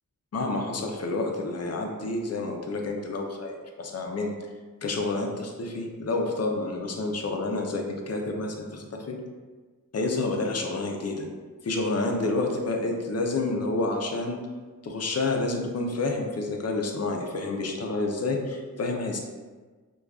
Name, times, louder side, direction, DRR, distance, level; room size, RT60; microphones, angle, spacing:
voice 1, 0.3-4.3 4.8-9.2 9.9-11.3 11.6-14.4 14.8-19.2, left 2 dB, 45° left, 2 dB, 0.5 m, -29 dB
4.9 x 2.3 x 2.3 m, 1.4 s
wide cardioid pair, 90°, 35 cm